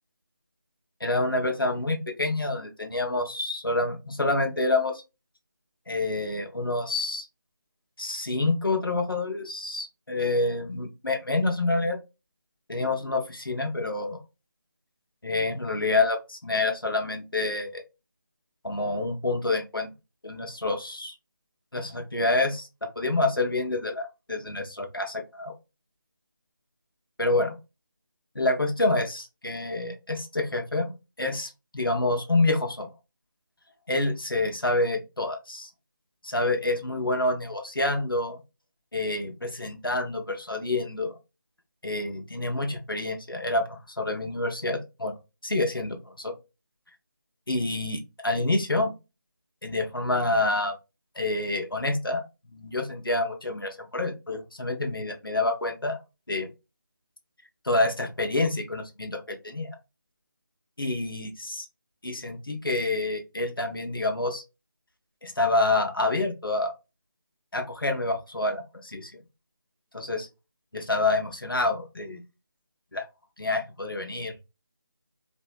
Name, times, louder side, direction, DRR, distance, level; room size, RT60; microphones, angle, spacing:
voice 1, 1.0-5.0 5.9-7.3 8.0-12.0 12.7-14.2 15.2-17.8 18.6-19.9 20.2-21.1 21.7-25.6 27.2-27.5 28.3-30.9 31.2-32.9 33.9-35.7 36.2-38.4 38.9-41.1 41.8-45.1 45.4-46.3 47.5-48.9 49.6-50.8 51.2-52.2 52.5-56.0 56.3-56.5 57.6-59.7 60.8-61.7 62.0-64.4 65.2-66.7 67.5-69.2 69.9-70.3 70.7-72.2 72.9-73.0 73.4-74.3, left 2 dB, 85° left, 4 dB, 1.0 m, -27 dB
4.2 x 2.7 x 2.2 m, 0.26 s
figure-of-eight pair, 160°, 11 cm